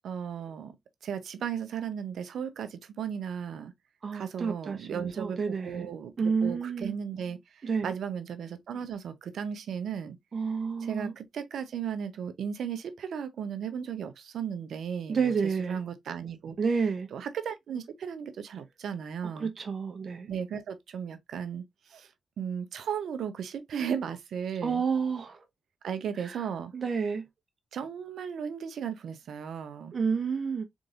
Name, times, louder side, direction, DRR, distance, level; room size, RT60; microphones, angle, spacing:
voice 1, 0.0-0.8 1.0-3.7 4.1-10.2 10.8-16.6 17.1-19.5 20.3-22.1 22.4-24.8 25.8-26.7 27.7-29.9, right 7 dB, 80° right, 0.7 m, -36 dB
voice 2, 4.0-5.9 6.2-6.9 7.6-7.9 10.3-11.1 15.1-15.8 16.6-17.1 19.4-20.3 24.6-25.4 26.2-26.4 26.7-27.2 29.9-30.6, right 5 dB, 60° right, 1.1 m, -29 dB
3.9 x 3.7 x 2.4 m
supercardioid pair, 45°, 0 cm